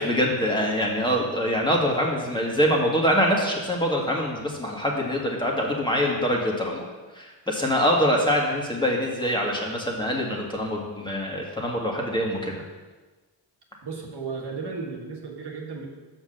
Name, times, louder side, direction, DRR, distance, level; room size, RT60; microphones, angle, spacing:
voice 1, 0.0-6.9 7.1-12.6, equal, 10° left, -2 dB, 1.7 m, -24 dB
voice 2, 13.8-15.9, right 4 dB, 60° right, 0 dB, 1.6 m, -34 dB
6.0 x 5.2 x 6.6 m, 1.3 s
cardioid pair, 65°, 44 cm